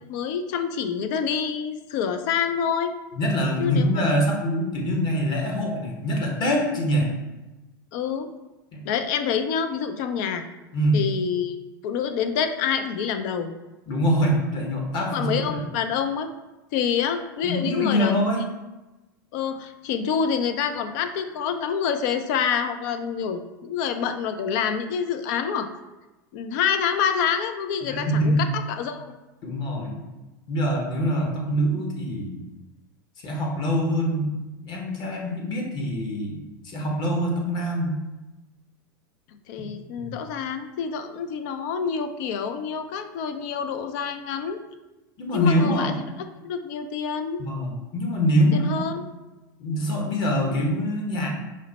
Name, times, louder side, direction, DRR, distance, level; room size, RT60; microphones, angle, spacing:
voice 1, 0.1-2.9 3.6-3.9 7.9-8.3 8.8-10.4 10.9-11.6 11.8-13.5 15.1-16.3 16.7-18.1 19.3-25.7 26.3-29.1 39.5-44.6 45.3-45.9 46.4-47.4 48.5-49.0, left 7 dB, 60° left, 8 dB, 0.5 m, -27 dB
voice 2, 3.1-7.1 8.7-8.8 10.7-11.0 13.9-15.6 17.4-18.4 27.8-28.4 29.4-30.0 30.5-32.4 33.2-36.4 36.6-38.0 39.6-39.7 40.0-40.1 45.2-46.0 47.4-49.0 49.6-51.3, equal, 45° left, 0 dB, 1.2 m, -24 dB
5.0 x 2.1 x 4.0 m, 1.1 s
hypercardioid pair, 100°, 11 cm